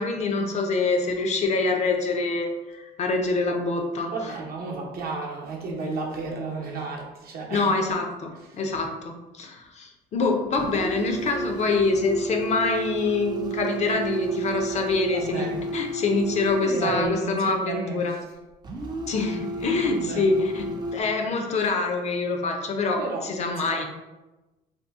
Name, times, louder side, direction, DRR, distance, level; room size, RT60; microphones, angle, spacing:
voice 1, 0.0-4.3 7.5-15.5 15.7-18.1 19.1-23.8, left 3 dB, 40° left, 3 dB, 0.5 m, -25 dB
voice 2, 4.1-7.7 15.1-15.6 16.6-18.2 19.8-20.3 23.0-23.8, right 3 dB, 65° right, -1 dB, 0.8 m, -32 dB
sound 1, 10.6-17.1 18.6-21.0, right 3 dB, 25° right, 0.4 m, -32 dB
2.7 x 2.3 x 3.4 m, 1.1 s
cardioid pair, 110°, 17 cm